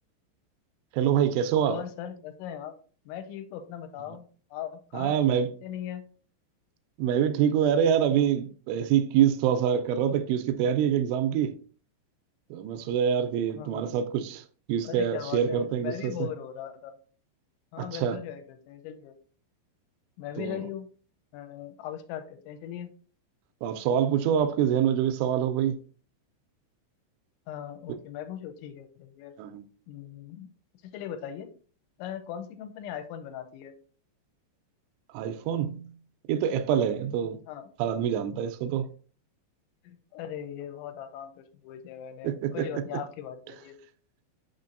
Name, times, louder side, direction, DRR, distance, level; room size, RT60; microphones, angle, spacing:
voice 1, 0.9-1.8 4.9-5.5 7.0-11.6 12.5-14.4 14.7-16.1 17.8-18.2 20.4-20.6 23.6-25.8 29.4-29.6 35.1-36.0 36.3-37.4 37.8-38.9 42.2-42.7, right 9 dB, 85° right, 2.9 m, -25 dB
voice 2, 1.7-2.8 3.1-6.0 12.9-13.0 13.5-13.9 14.8-17.0 17.7-19.1 20.2-20.9 21.3-22.9 27.5-29.3 29.9-30.5 30.8-31.5 32.0-33.7 37.2-37.7 39.8-43.8, left 9 dB, 85° left, 3.0 m, -39 dB
6.6 x 5.7 x 2.5 m
omnidirectional pair, 5.4 m